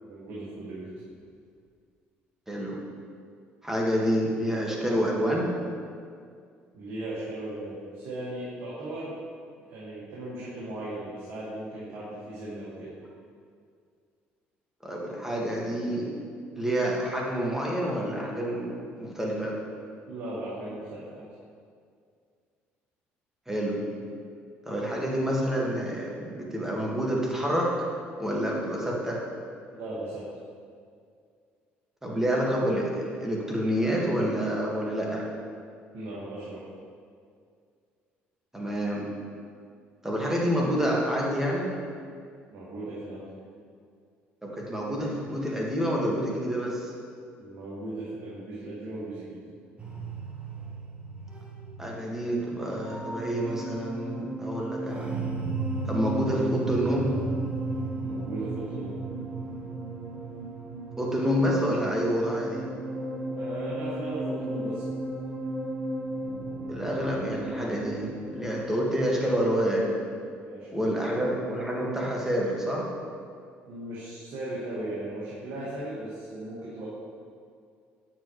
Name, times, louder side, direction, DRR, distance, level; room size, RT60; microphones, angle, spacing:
voice 1, 0.0-0.9 6.7-9.2 9.7-12.9 20.1-21.2 29.7-30.2 35.9-36.6 42.5-43.2 47.4-49.4 58.0-59.0 63.4-65.0 70.4-71.1 73.7-76.9, right 1 dB, 65° right, -8 dB, 1.9 m, -37 dB
voice 2, 2.5-2.8 3.6-5.5 14.8-16.1 16.6-19.6 23.5-23.9 24.7-27.7 28.2-29.2 32.0-35.2 38.5-39.1 40.0-41.7 44.4-46.9 51.8-55.1 55.8-57.2 61.0-62.7 66.7-69.9 70.7-72.9, equal, 10° right, -3 dB, 1.9 m, -28 dB
sound 1, 49.8-68.6, right 2 dB, 25° right, 1.4 m, -34 dB
8.9 x 7.3 x 3.2 m, 2.2 s
supercardioid pair, 85°, 5 cm